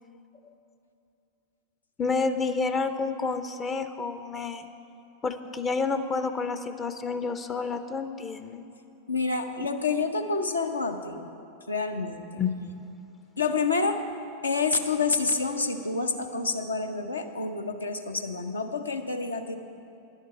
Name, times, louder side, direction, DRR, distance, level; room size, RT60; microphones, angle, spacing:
voice 1, 2.0-4.7 5.2-8.6 12.4-12.9, left 4 dB, 20° left, 9 dB, 0.5 m, -29 dB
voice 2, 9.1-11.3 11.7-12.4 13.4-14.0 14.4-19.6, left 4 dB, 80° left, 6 dB, 0.8 m, -28 dB
11.0 x 7.3 x 7.9 m, 2.7 s
figure-of-eight pair, 90°, 0 cm